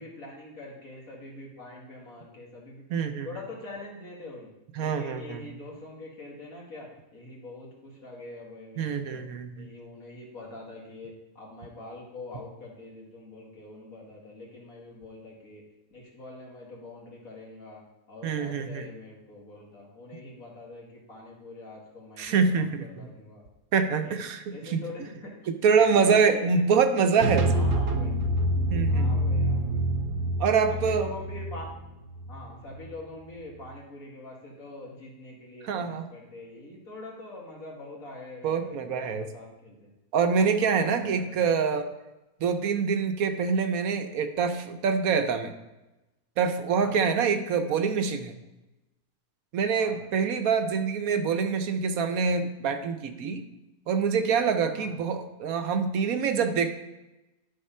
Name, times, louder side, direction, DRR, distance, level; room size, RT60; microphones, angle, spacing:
voice 1, 0.0-2.8 3.2-4.5 4.8-6.9 7.1-9.2 9.6-15.6 15.9-17.8 18.1-22.7 23.0-23.4 24.0-24.1 24.5-25.3 25.9-27.2 27.5-28.2 28.9-29.8 30.7-31.7 32.3-35.8 36.1-39.0 39.3-39.9 40.8-41.4 46.8-47.1 49.7-50.1 54.7-54.9, left 2 dB, 70° left, -3 dB, 2.5 m, -44 dB
voice 2, 2.9-3.3 4.7-5.5 8.8-9.7 18.2-18.9 22.2-23.1 23.7-24.8 25.5-27.7 28.7-29.1 30.4-31.1 35.6-36.1 38.4-39.3 40.1-41.9 42.4-45.5 46.4-48.3 49.5-53.4 53.9-56.7, right 5 dB, 75° right, 7 dB, 1.2 m, -25 dB
sound 1, 27.2-32.9, right 1 dB, 60° right, 1.0 m, -27 dB
11.5 x 4.0 x 5.5 m, 1.0 s
omnidirectional pair, 1.5 m